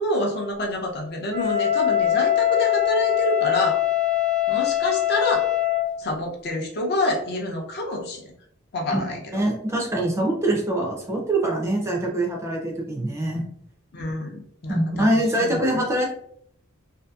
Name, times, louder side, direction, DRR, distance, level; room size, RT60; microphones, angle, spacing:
voice 1, 0.0-3.8 4.5-5.5 6.0-8.3 8.7-9.4 13.9-15.8, left 1 dB, 50° left, 1 dB, 0.5 m, -27 dB
Wind instrument woodwind instrument, 1.3-5.9, left 12 dB, 85° left, 0.9 m, -22 dB
voice 2, 9.3-13.4 14.7-16.1, right 1 dB, 15° right, 0 dB, 0.4 m, -24 dB
2.6 x 2.5 x 2.3 m, 0.69 s
head